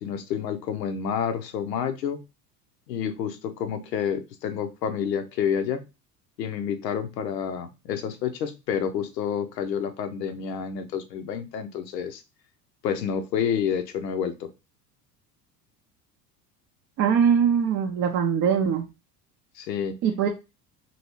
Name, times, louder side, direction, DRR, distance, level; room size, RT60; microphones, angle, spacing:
voice 1, 0.0-2.2 2.9-5.9 6.4-12.2 12.8-14.5 19.6-20.0, left 7 dB, 75° left, 0.7 m, -29 dB
voice 2, 17.0-18.8 20.0-20.3, right 7 dB, 35° right, 0.5 m, -22 dB
2.9 x 2.7 x 2.9 m
figure-of-eight pair, 70°, 49 cm